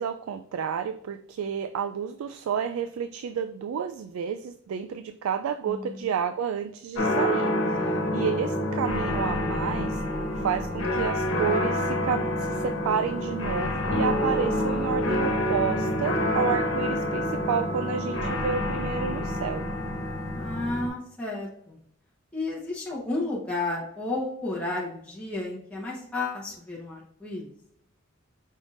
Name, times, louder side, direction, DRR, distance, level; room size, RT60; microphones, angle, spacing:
voice 1, 0.0-10.0 10.4-19.7, right 7 dB, 90° right, 9 dB, 0.3 m, -30 dB
voice 2, 5.7-6.0 7.8-8.1 20.3-21.8 22.3-27.5, left 2 dB, 5° left, -5 dB, 0.9 m, -32 dB
sound 1, 7.0-20.9, left 1 dB, 80° left, 1.1 m, -27 dB
5.4 x 3.4 x 2.5 m, 0.69 s
head